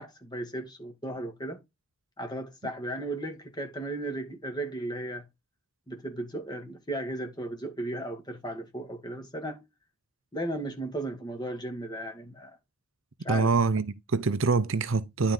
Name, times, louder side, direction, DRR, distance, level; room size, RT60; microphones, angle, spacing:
voice 1, 0.0-1.6 2.2-5.3 5.9-9.6 10.3-12.6 13.2-13.5, right 1 dB, 20° left, 2.2 m, -35 dB
voice 2, 13.3-15.3, right 4 dB, 60° right, 0.7 m, -25 dB
11.0 x 4.6 x 3.8 m
head